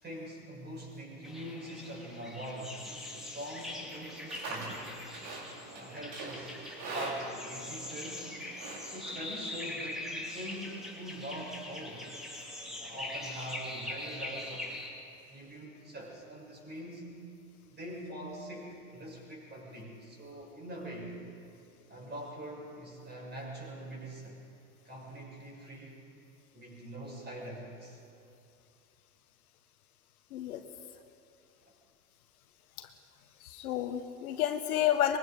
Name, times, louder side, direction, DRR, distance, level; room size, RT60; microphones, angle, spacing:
voice 1, 0.0-4.9 5.7-8.4 8.8-12.1 12.8-14.8 15.3-17.2 17.7-21.2 21.9-24.4 24.8-26.0 26.5-28.0, right 1 dB, 20° right, -1 dB, 6.7 m, -43 dB
sound 1, 1.2-14.9, left 2 dB, ahead, 3.7 m, -42 dB
Livestock farm animals working animals, 4.0-9.7, right 2 dB, 45° right, 4.9 m, -43 dB
voice 2, 30.3-30.6 32.8-32.9 33.4-35.2, left 11 dB, 65° left, 7 dB, 1.5 m, -30 dB
24.5 x 22.0 x 5.0 m, 2.7 s
figure-of-eight pair, 90°, 48 cm